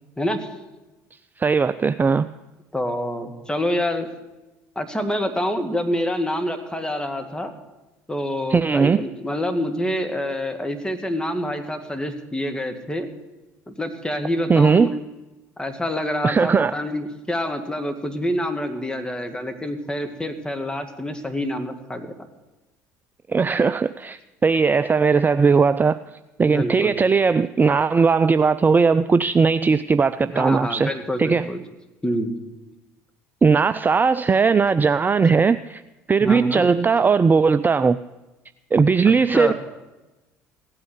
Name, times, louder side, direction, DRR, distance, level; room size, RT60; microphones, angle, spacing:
voice 1, 0.2-0.5 2.7-4.1 4.8-7.5 8.1-13.1 13.7-14.9 15.6-22.1 26.5-27.0 30.3-31.6 32.0-32.4 36.2-36.7 39.0-39.5, left 1 dB, 10° left, 2.2 m, -27 dB
voice 2, 1.4-2.3 8.5-9.0 14.5-14.9 16.2-16.7 23.3-26.0 26.4-30.9 31.2-31.5 33.4-35.8 36.1-38.0 38.7-39.5, right 5 dB, 20° right, 0.4 m, -18 dB
16.5 x 8.7 x 8.1 m
hypercardioid pair, 65°, 9 cm